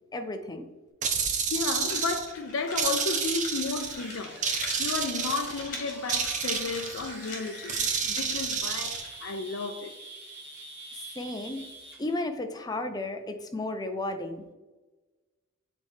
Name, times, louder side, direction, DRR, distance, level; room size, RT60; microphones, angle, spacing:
voice 1, 0.1-0.7 10.9-11.7 12.0-14.5, left 2 dB, 20° left, 0.5 m, -33 dB
sound 1, 1.0-2.3 2.8-4.0 4.4-5.7 6.1-7.1 7.7-9.0, right 6 dB, 40° right, 0.6 m, -29 dB
voice 2, 1.5-4.4 4.7-9.9, left 4 dB, 80° left, 0.5 m, -33 dB
sound 2, 1.8-9.3, left 2 dB, 40° left, 1.8 m, -43 dB
sound 3, 3.9-12.2, right 2 dB, 60° right, 1.3 m, -46 dB
8.2 x 4.1 x 3.3 m
head